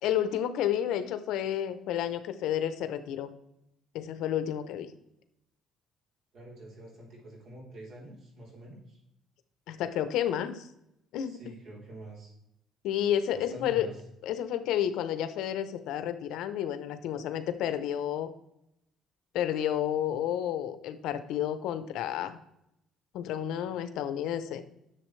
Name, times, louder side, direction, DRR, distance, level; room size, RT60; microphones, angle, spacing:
voice 1, 0.0-3.3 3.9-4.9 9.7-10.7 11.1-11.5 12.8-13.9 14.2-18.3 19.3-22.4 23.1-24.6, left 10 dB, 80° left, 11 dB, 0.8 m, -31 dB
voice 2, 6.3-9.0 11.2-12.3 13.3-14.0, right 1 dB, 60° right, -2 dB, 3.6 m, -46 dB
11.0 x 7.0 x 3.2 m, 0.82 s
cardioid pair, 125°, 0 cm